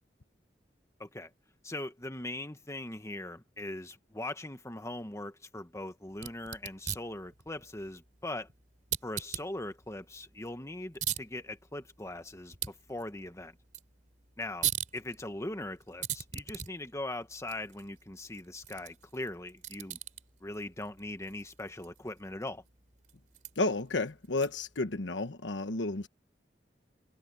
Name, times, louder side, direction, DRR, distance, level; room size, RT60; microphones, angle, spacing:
voice 1, 1.0-1.3 1.6-8.5 9.0-13.6 14.4-14.7 14.9-20.0 20.4-22.6, left 1 dB, 15° left, 1.5 m, -40 dB
sound 1, 6.1-24.8, right 10 dB, 45° right, 3.5 m, -42 dB
voice 2, 23.6-26.1, left 2 dB, 90° left, 1.3 m, -32 dB
head